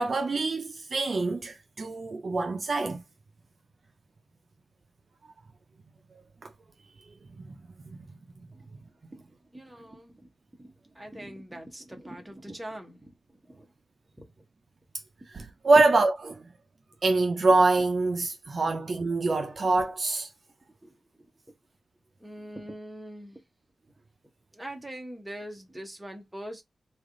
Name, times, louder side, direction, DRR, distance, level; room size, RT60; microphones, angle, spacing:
voice 1, 0.0-3.0 6.4-6.5 7.4-7.6 15.3-16.5 17.0-20.3, right 3 dB, 45° right, 0.4 m, -25 dB
voice 2, 9.1-10.3 10.6-13.1 13.5-13.7 14.2-14.3 15.7-15.8 18.7-18.8 20.8-20.9 21.2-21.3 22.2-23.4 24.5-26.6, right 1 dB, 10° right, 0.8 m, -42 dB
3.2 x 2.4 x 3.6 m
wide cardioid pair, 180°, 0 cm